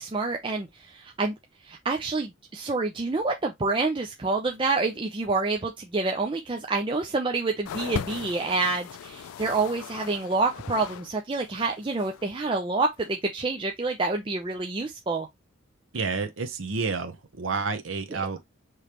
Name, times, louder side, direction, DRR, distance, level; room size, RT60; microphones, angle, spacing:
voice 1, 0.0-1.3 1.6-15.3 18.1-18.2, right 3 dB, 25° right, 0.4 m, -28 dB
sound 1, 7.7-11.1 11.3-12.2 13.0-13.1, left 8 dB, 85° left, 0.3 m, -38 dB
voice 2, 15.9-18.4, right 4 dB, 70° right, 0.7 m, -30 dB
5.0 x 3.1 x 2.9 m
head